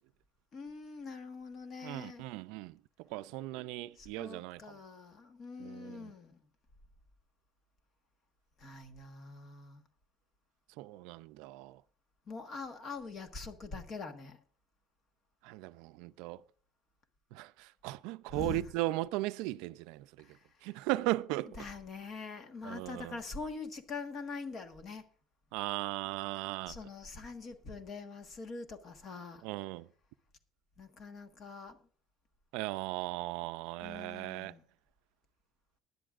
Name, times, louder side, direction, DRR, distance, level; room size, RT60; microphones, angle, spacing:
voice 1, 0.5-2.2 3.9-6.4 8.6-9.8 12.3-14.4 18.3-18.7 20.2-20.7 21.6-25.0 26.7-29.4 30.8-31.8 33.8-34.7, left 4 dB, 30° left, 1.4 m, -44 dB
voice 2, 1.8-2.8 3.1-4.6 5.6-6.1 10.8-11.8 15.4-16.4 17.3-20.1 20.6-21.6 22.6-23.2 25.5-26.7 29.4-29.9 32.5-34.5, right 18 dB, 70° right, 0.4 m, -37 dB
20.0 x 11.0 x 2.5 m
cardioid pair, 170°, 0 cm